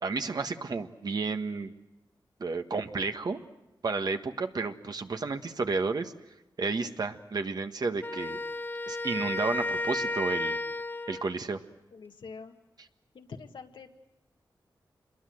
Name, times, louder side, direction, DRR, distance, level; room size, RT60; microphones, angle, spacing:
voice 1, 0.0-1.7 2.4-3.4 3.8-6.1 6.6-8.4 8.9-10.6 11.1-11.6, right 4 dB, 55° right, 7 dB, 1.5 m, -31 dB
Wind instrument woodwind instrument, 8.0-11.4, left 2 dB, 25° left, 0.8 m, -33 dB
voice 2, 11.9-12.5 13.1-13.9, left 5 dB, 80° left, 5 dB, 1.8 m, -45 dB
27.5 x 22.0 x 7.9 m, 0.96 s
wide cardioid pair, 90°, 8 cm